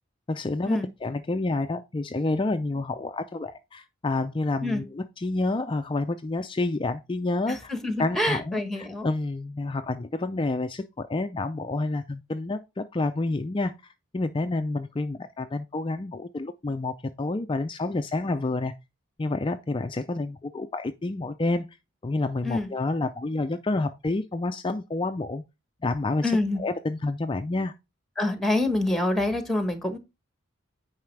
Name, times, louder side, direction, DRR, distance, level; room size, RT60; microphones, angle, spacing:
voice 1, 0.3-7.7 8.0-13.7 14.1-18.7 19.2-21.7 22.0-25.4 25.8-27.7, left 2 dB, 25° left, 0.4 m, -29 dB
voice 2, 7.5-9.1 22.4-22.7 26.2-26.6 28.2-30.0, left 1 dB, ahead, 1.1 m, -26 dB
9.2 x 4.9 x 3.2 m
head